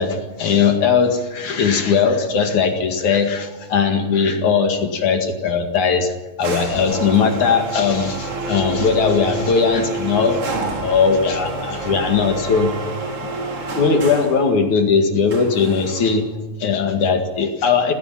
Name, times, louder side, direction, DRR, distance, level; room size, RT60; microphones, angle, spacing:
voice 1, 0.0-6.1 6.4-10.4 10.8-12.7 13.8-17.9, left 5 dB, 60° left, 4 dB, 3.3 m, -19 dB
Machine Handicap Lift, 6.4-14.4 15.3-16.2, right 3 dB, 45° right, 3.6 m, -28 dB
28.0 x 16.5 x 5.9 m, 1.1 s
omnidirectional pair, 4.1 m